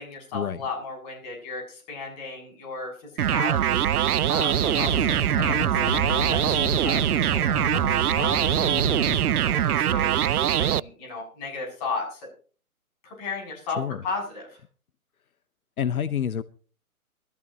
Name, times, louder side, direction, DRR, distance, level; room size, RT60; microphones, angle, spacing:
voice 1, 0.0-12.3 13.0-14.6, left 4 dB, 25° left, 7.4 m, -36 dB
sound 1, 3.2-10.8, right 10 dB, 80° right, 0.6 m, -23 dB
sound 2, 4.5-9.8, left 8 dB, 45° left, 0.6 m, -34 dB
voice 2, 15.8-16.4, left 9 dB, 75° left, 0.9 m, -27 dB
22.0 x 14.5 x 3.0 m
hypercardioid pair, 155°, 44 cm